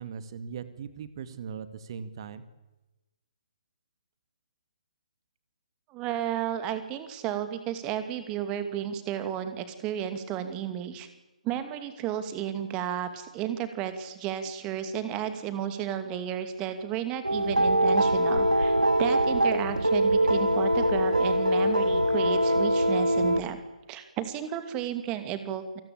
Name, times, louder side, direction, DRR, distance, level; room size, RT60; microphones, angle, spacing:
voice 1, 0.0-2.4, right 6 dB, 40° right, 13 dB, 2.1 m, -39 dB
voice 2, 5.9-11.1 11.4-23.6 23.9-25.8, right 10 dB, 20° right, 10 dB, 2.6 m, -33 dB
sound 1, 17.2-23.4, right 1 dB, 80° right, 1.7 m, -23 dB
28.5 x 19.5 x 8.8 m, 1.1 s
figure-of-eight pair, 135°, 4 cm